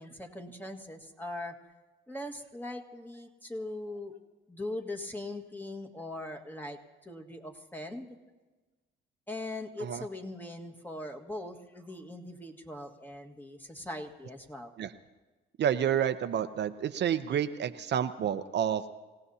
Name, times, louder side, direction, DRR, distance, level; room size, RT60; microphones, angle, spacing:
voice 1, 0.0-1.5 2.1-4.2 4.5-8.2 9.3-14.7, left 1 dB, 10° left, 3 dB, 1.7 m, -40 dB
voice 2, 15.6-18.8, right 9 dB, 60° right, 9 dB, 0.7 m, -29 dB
26.0 x 17.0 x 2.8 m, 1.2 s
cardioid pair, 90°, 20 cm